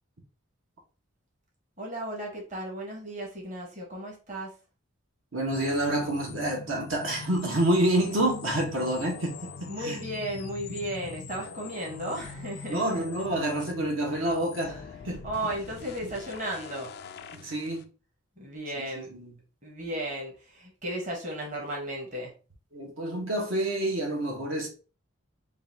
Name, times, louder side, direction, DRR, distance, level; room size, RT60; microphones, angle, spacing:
voice 1, 1.8-4.5 9.7-12.8 15.2-16.9 18.4-19.1 19.6-22.3, right 1 dB, 35° right, 1.1 m, -35 dB
voice 2, 5.3-10.0 10.7-10.8 12.7-15.2 17.3-17.9 18.8-19.3 22.7-24.7, right 1 dB, 70° right, 1.1 m, -28 dB
sound 1, 5.5-17.9, left 5 dB, 50° left, 0.3 m, -43 dB
3.9 x 2.4 x 3.9 m
head